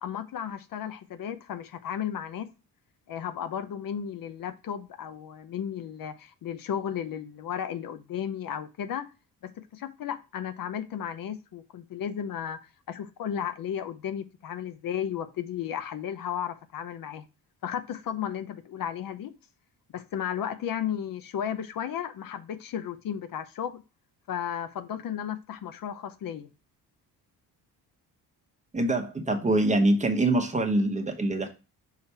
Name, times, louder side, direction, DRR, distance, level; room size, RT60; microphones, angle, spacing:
voice 1, 0.0-2.5 3.1-9.1 9.4-12.6 12.9-17.2 17.6-19.4 19.9-23.8 24.3-26.5, left 9 dB, 60° left, 0.8 m, -34 dB
voice 2, 28.7-31.5, right 1 dB, 20° right, 1.0 m, -24 dB
5.7 x 3.1 x 5.4 m
cardioid pair, 135°, 38 cm